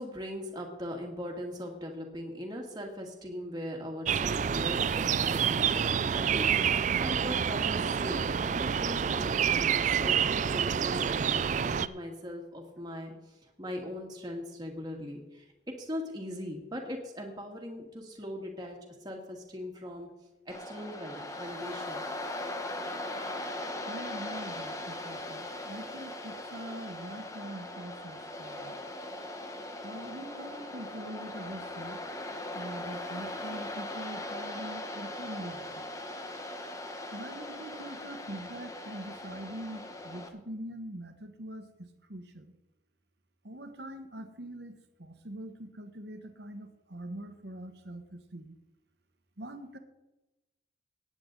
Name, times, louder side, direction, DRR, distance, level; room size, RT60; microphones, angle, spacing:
voice 1, 0.0-15.5 15.8-20.1 20.5-22.0, equal, 20° right, 0 dB, 1.8 m, -40 dB
sound 1, 4.1-11.9, right 7 dB, 40° right, 0.3 m, -28 dB
Waves surf, 20.5-40.3, left 1 dB, 15° left, 1.0 m, -39 dB
voice 2, 23.8-28.8 29.8-32.0 32.5-35.9 37.1-42.5 43.4-48.6 49.4-49.8, right 1 dB, 60° right, 7 dB, 1.3 m, -43 dB
18.0 x 8.9 x 3.9 m, 1.0 s
head